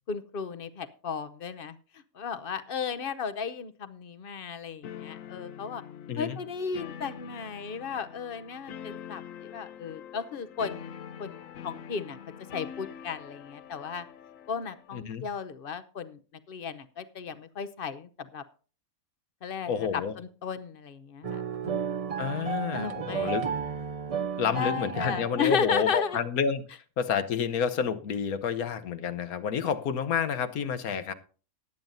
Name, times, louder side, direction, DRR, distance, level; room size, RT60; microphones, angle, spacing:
voice 1, 0.1-1.8 2.1-5.8 6.2-12.2 12.5-14.1 14.5-16.2 16.5-18.4 19.4-21.9 22.7-23.5 24.5-26.2, left 6 dB, 50° left, 13 dB, 0.8 m, -34 dB
sound 1, 4.8-14.9, left 9 dB, 70° left, 1.1 m, -44 dB
voice 2, 14.9-15.3 19.7-20.1 22.2-23.5 24.4-26.6 27.0-31.1, left 7 dB, 90° left, 11 dB, 1.4 m, -29 dB
sound 2, 21.2-25.9, right 7 dB, 45° right, 0.4 m, -33 dB
19.0 x 9.0 x 2.6 m, 0.39 s
omnidirectional pair, 1.5 m